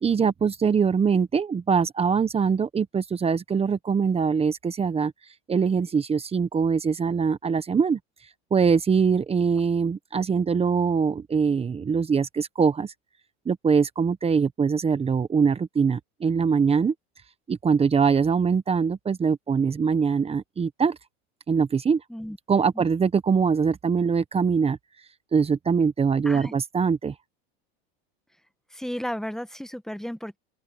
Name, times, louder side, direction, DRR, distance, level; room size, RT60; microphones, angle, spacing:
voice 1, 0.0-5.1 5.5-8.0 8.5-12.9 13.4-16.9 17.5-21.0 21.5-22.0 22.5-24.8 25.3-27.1, right 6 dB, 20° right, 1.2 m, -23 dB
voice 2, 28.7-30.4, equal, ahead, 1.2 m, -33 dB
open air
supercardioid pair, 120°, 32 cm